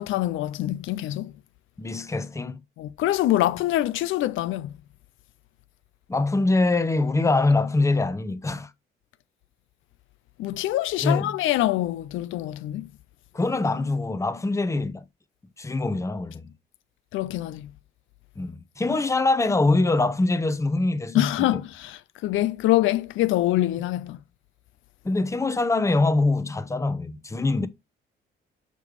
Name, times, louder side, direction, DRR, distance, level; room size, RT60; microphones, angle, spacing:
voice 1, 0.0-1.3 2.8-4.7 10.4-12.9 17.1-17.7 21.1-24.2, left 15 dB, 80° left, 0.4 m, -25 dB
voice 2, 1.8-2.6 6.1-8.7 11.0-11.3 13.3-15.0 15.6-16.5 18.4-21.3 25.0-27.7, left 2 dB, 15° left, 0.7 m, -23 dB
6.7 x 3.2 x 4.8 m
cardioid pair, 90°, 20 cm